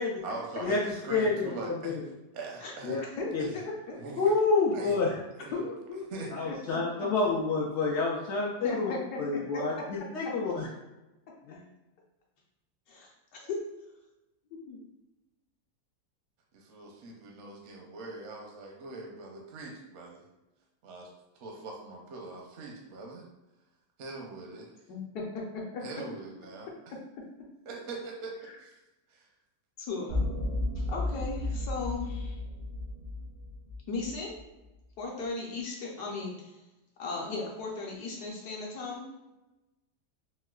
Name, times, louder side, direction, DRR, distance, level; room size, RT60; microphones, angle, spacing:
voice 1, 0.2-2.0 2.3-3.0 3.4-3.6 4.0-4.4 4.7-5.0 5.3-5.6 6.1-6.3 16.5-20.2 20.8-21.1 21.3-23.3 24.0-24.7 25.8-26.7 27.7-28.3 28.6-28.8 29.1-29.3, right 3 dB, 65° right, 0 dB, 0.7 m, -42 dB
voice 2, 3.2-4.0 5.5-7.1 8.6-9.6 10.4-10.5 12.9-13.6 14.7-14.8 24.9-25.8 29.8-30.2 30.8-32.4 33.9-34.3 35.0-36.5 37.0-39.0, left 3 dB, 70° left, -2 dB, 1.2 m, -37 dB
voice 3, 4.2-5.1 6.4-8.9 9.2-10.7 11.5-11.6, left 3 dB, 90° left, -4 dB, 0.6 m, -28 dB
sound 1, 30.1-34.4, left 2 dB, 85° right, 1.6 m, -33 dB
4.4 x 2.1 x 2.3 m, 1.0 s
omnidirectional pair, 1.8 m